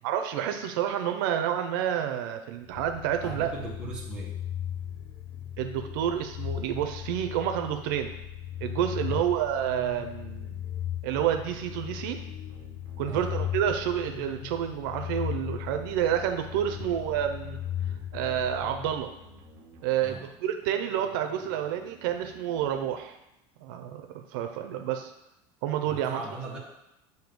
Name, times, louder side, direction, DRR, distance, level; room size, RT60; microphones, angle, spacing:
voice 1, 0.0-3.5 5.6-8.1 8.6-10.6 11.0-12.2 13.0-17.6 18.1-19.1 19.8-23.2 23.6-25.1 25.6-26.2, right 10 dB, 85° right, 6 dB, 0.6 m, -29 dB
sound 1, 2.7-19.5, left 10 dB, 40° left, 0.5 m, -37 dB
voice 2, 3.2-4.4 9.0-9.3 13.1-13.3 16.7-16.9 20.0-20.2 25.8-26.6, right 3 dB, 10° right, -5 dB, 1.2 m, -39 dB
sound 2, 11.6-23.5, right 5 dB, 50° right, 1.0 m, -54 dB
7.8 x 2.8 x 5.2 m, 0.87 s
cardioid pair, 175°, 11 cm